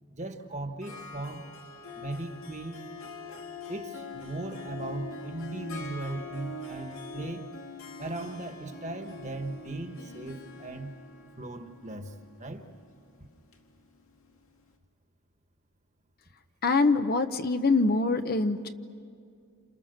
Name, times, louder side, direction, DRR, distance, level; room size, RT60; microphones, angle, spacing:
voice 1, 0.1-1.5 1.9-2.8 3.7-7.5 8.0-10.9 11.4-12.6, right 2 dB, 30° right, 6 dB, 1.5 m, -38 dB
Harp, 0.8-14.4, left 3 dB, 70° left, 2.2 m, -44 dB
voice 2, 16.6-18.7, left 3 dB, 45° left, 9 dB, 0.9 m, -24 dB
29.0 x 28.0 x 6.6 m, 2.4 s
head